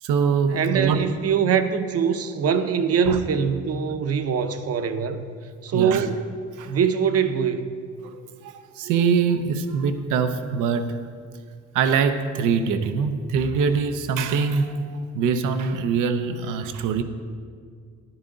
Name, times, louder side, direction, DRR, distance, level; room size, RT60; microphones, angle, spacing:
voice 1, 0.0-1.0 3.1-3.2 5.7-6.1 6.6-6.8 8.0-11.0 11.7-17.0, right 5 dB, 90° right, 9 dB, 0.7 m, -23 dB
voice 2, 0.5-5.2 5.6-6.3 6.7-7.8, right 7 dB, 50° right, 9 dB, 0.8 m, -23 dB
11.0 x 9.8 x 3.9 m, 2.1 s
cardioid pair, 90°, 30 cm